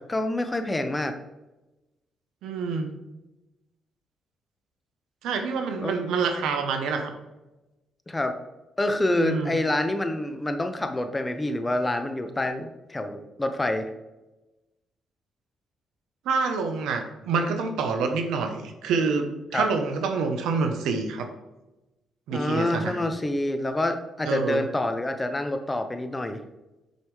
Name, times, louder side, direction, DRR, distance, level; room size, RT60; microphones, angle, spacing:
voice 1, 0.1-1.2 5.8-5.9 8.1-8.4 8.8-13.9 19.5-19.7 22.3-26.4, left 1 dB, 15° left, 8 dB, 0.6 m, -27 dB
voice 2, 2.4-2.9 5.2-7.1 9.2-9.6 16.2-21.3 22.3-23.0 24.2-24.7, right 4 dB, 85° right, 6 dB, 0.8 m, -27 dB
6.3 x 5.3 x 3.2 m, 1.0 s
cardioid pair, 90°, 0 cm